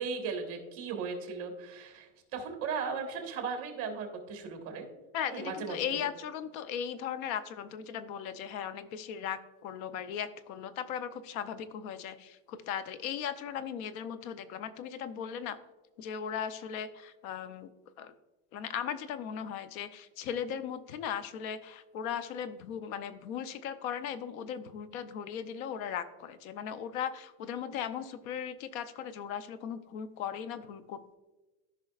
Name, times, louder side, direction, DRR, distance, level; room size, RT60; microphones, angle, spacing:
voice 1, 0.0-4.9 5.3-6.0, right 5 dB, 35° right, 3 dB, 1.4 m, -37 dB
voice 2, 5.1-15.6 16.0-17.7 18.0-18.1 18.5-31.2, left 8 dB, 80° left, 12 dB, 0.7 m, -37 dB
14.0 x 5.6 x 2.4 m, 1.1 s
cardioid pair, 170°, 42 cm